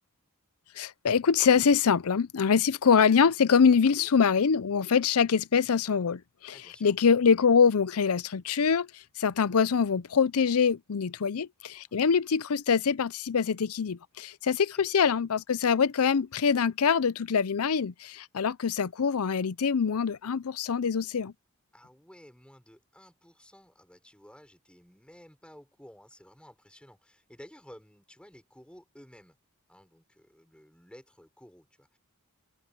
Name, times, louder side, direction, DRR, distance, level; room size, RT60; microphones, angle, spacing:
voice 1, 0.8-21.3, left 6 dB, 70° left, 0.6 m, -24 dB
voice 2, 6.5-6.9 11.9-12.1 14.7-14.9 21.7-29.4 29.7-32.0, equal, 5° left, 6.3 m, -54 dB
open air
head